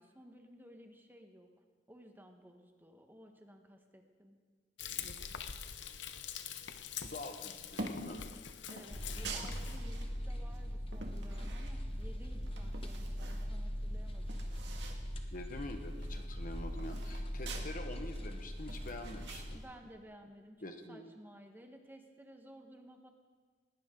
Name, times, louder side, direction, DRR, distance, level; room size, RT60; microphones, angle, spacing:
voice 1, 0.0-1.5 1.9-4.4 8.7-14.4 19.5-20.6 20.9-23.1, equal, 10° right, 4 dB, 1.4 m, -55 dB
Frying (food), 4.8-9.8, left 8 dB, 80° left, 0.9 m, -44 dB
voice 2, 7.0-8.2 15.3-19.6 20.6-21.1, left 1 dB, 50° left, 6 dB, 1.4 m, -46 dB
sound 1, 7.7-8.2 8.7-10.1 10.5-12.1 12.4-13.5 13.8-13.9 14.1-15.0 15.3-15.4 15.8-17.7 18.1-19.5, right 3 dB, 75° right, 2.0 m, -46 dB
sound 2, 8.9-19.6, equal, 30° left, 1.4 m, -40 dB
20.5 x 18.0 x 3.9 m, 1.5 s
head